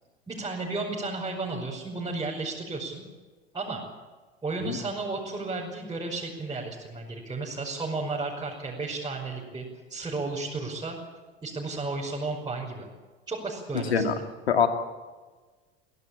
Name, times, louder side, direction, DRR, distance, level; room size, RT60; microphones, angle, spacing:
voice 1, 0.3-3.0 3.5-3.8 4.4-9.6 9.9-11.0 11.4-12.9 13.3-14.2, right 3 dB, 15° right, -5 dB, 5.5 m, -33 dB
voice 2, 4.6-4.8 13.9-14.1 14.5-14.7, left 7 dB, 80° left, 6 dB, 2.4 m, -22 dB
24.0 x 16.5 x 8.8 m, 1.3 s
hypercardioid pair, 85°, 31 cm